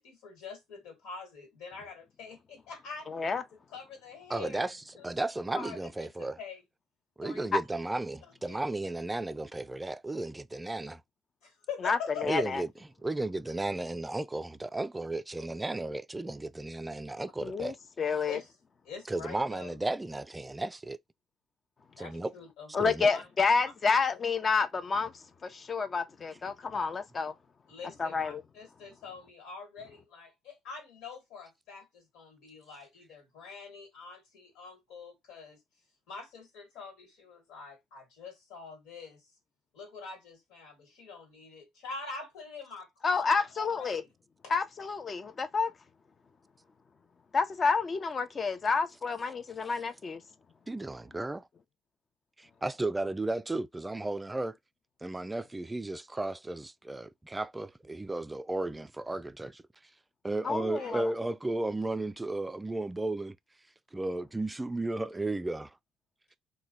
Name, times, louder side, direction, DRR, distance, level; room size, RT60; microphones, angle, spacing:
voice 1, 0.0-3.1 3.7-5.1 5.5-6.6 7.2-7.6 8.5-8.6 11.4-12.5 18.3-18.5 18.8-19.8 22.0-22.7 23.1-23.2 27.7-35.6 36.1-39.3 39.7-43.3 43.5-44.1 44.4-44.5 60.8-61.1, left 5 dB, 80° left, 1.5 m, -45 dB
voice 2, 3.1-3.4 7.5-7.6 11.8-12.6 17.4-18.4 22.7-27.3 28.0-28.4 43.0-44.0 44.5-45.7 47.3-50.2 60.4-61.1, left 4 dB, 40° left, 0.6 m, -29 dB
voice 3, 4.3-6.4 7.2-11.0 12.2-12.7 13.0-17.8 19.1-21.0 22.0-22.3 22.8-23.1 50.7-51.5 52.4-54.6 55.0-59.6 60.2-63.4 63.9-65.7, right 2 dB, 15° right, 0.3 m, -34 dB
3.0 x 2.2 x 3.8 m
supercardioid pair, 75°, 0 cm